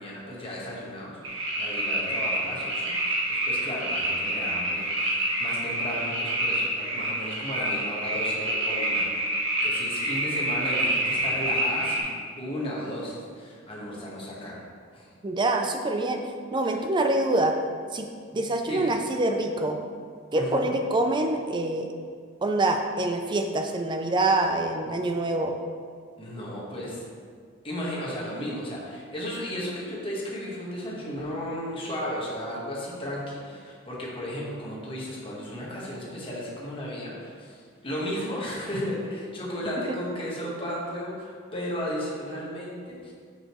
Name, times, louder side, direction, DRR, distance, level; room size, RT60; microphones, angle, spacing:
voice 1, 0.0-12.0 12.4-14.6 14.9-15.1 16.6-16.8 18.6-18.9 20.3-20.7 26.2-27.0 27.6-43.1, equal, 25° left, -5 dB, 1.3 m, -34 dB
sound 1, 1.2-12.0, right 1 dB, 60° right, 1.6 m, -27 dB
voice 2, 15.2-16.2 16.5-17.5 17.9-18.1 18.3-19.8 20.3-21.9 22.4-25.5 39.9-40.0, right 2 dB, 20° right, 4 dB, 0.4 m, -25 dB
6.4 x 6.3 x 3.1 m, 2.1 s
head